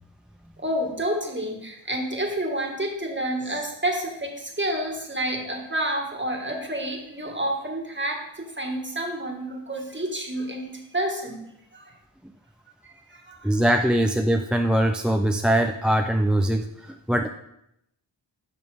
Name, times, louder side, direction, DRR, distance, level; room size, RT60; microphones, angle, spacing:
voice 1, 0.6-11.9 12.8-13.6, right 1 dB, 25° right, 1 dB, 1.7 m, -29 dB
voice 2, 13.4-17.3, right 1 dB, ahead, 4 dB, 0.4 m, -22 dB
11.0 x 5.9 x 3.5 m, 0.80 s
wide cardioid pair, 70°, 45 cm